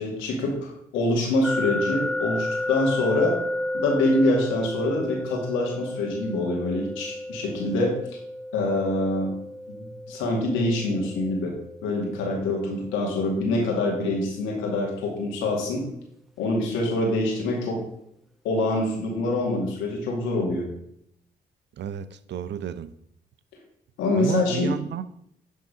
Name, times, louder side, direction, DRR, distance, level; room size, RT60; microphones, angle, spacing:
voice 1, 0.0-3.4 3.7-8.0 8.5-9.3 9.8-11.5 11.8-15.9 16.4-17.8 18.4-20.7 24.0-24.8, left 2 dB, 85° left, 2.2 m, -25 dB
sound 1, 1.4-14.3, left 1 dB, ahead, 0.7 m, -33 dB
voice 2, 21.8-22.9 24.2-25.0, right 10 dB, 60° right, 0.6 m, -31 dB
11.0 x 3.8 x 4.9 m
supercardioid pair, 55°, 20 cm